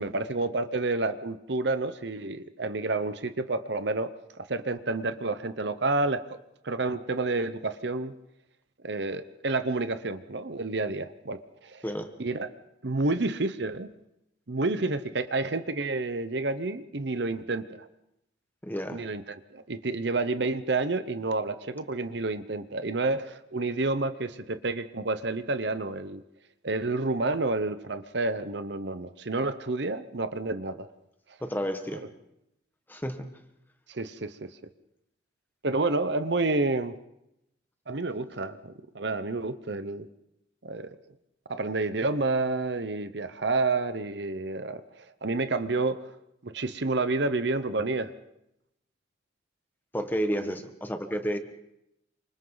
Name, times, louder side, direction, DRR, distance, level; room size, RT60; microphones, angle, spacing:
voice 1, 0.0-4.1 4.4-8.1 8.8-11.8 12.2-12.5 12.8-13.9 14.5-17.9 18.9-19.2 19.5-26.2 26.6-30.9 33.9-34.5 35.6-37.0 37.9-40.1 40.6-41.0 41.5-46.0 46.4-48.1 50.3-50.5, right 3 dB, 60° right, 11 dB, 0.9 m, -29 dB
voice 2, 18.6-19.0 31.4-32.0 32.9-33.3 49.9-51.4, equal, 10° left, 6 dB, 1.6 m, -31 dB
28.5 x 26.0 x 4.0 m, 0.83 s
head